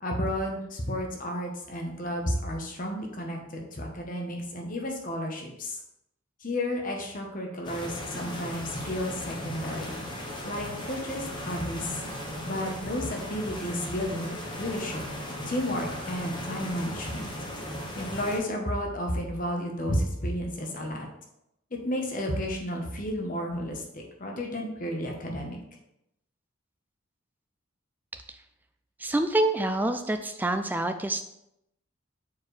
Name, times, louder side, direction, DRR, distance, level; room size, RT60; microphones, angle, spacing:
voice 1, 0.0-5.8 6.4-10.0 10.4-12.0 12.4-15.0 15.5-17.3 18.0-21.1 21.7-25.6, equal, 40° left, 1 dB, 1.0 m, -32 dB
sound 1, 7.6-18.4, left 1 dB, 20° left, 1.0 m, -37 dB
voice 2, 29.0-31.2, right 1 dB, 10° right, 7 dB, 0.3 m, -26 dB
7.1 x 4.5 x 3.3 m, 0.82 s
head